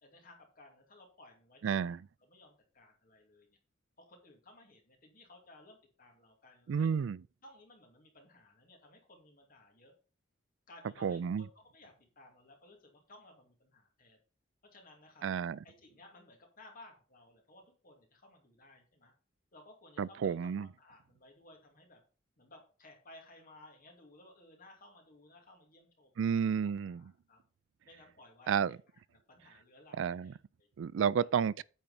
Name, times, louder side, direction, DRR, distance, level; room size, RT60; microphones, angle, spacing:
voice 1, 0.0-3.6 4.0-6.9 7.4-9.9 10.7-14.2 14.6-15.3 15.6-19.1 19.5-22.0 22.4-26.4 26.8-27.4 27.8-28.7 28.9-30.7 31.2-31.3, left 2 dB, 45° left, 2.3 m, -58 dB
voice 2, 1.6-2.0 6.7-7.2 11.0-11.4 15.2-15.6 20.0-20.7 26.2-27.1 28.5-28.8 30.0-30.3 30.8-31.6, right 7 dB, 70° right, 0.3 m, -31 dB
9.0 x 4.5 x 5.4 m
head